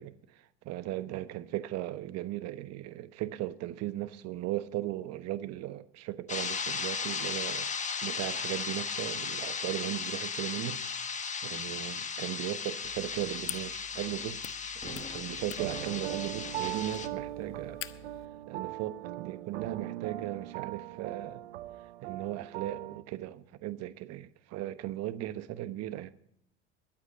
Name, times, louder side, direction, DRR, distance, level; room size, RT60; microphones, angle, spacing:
voice 1, 0.0-7.7 8.0-10.8 11.4-17.8 18.5-21.4 22.0-26.1, right 14 dB, 55° right, 1.2 m, -37 dB
sound 1, 6.3-17.1, left 5 dB, 25° left, 1.5 m, -36 dB
sound 2, 12.8-18.3, left 11 dB, 40° left, 1.1 m, -47 dB
sound 3, 15.6-23.0, right 14 dB, 80° right, 0.9 m, -40 dB
22.0 x 8.4 x 5.3 m
hypercardioid pair, 85°, 31 cm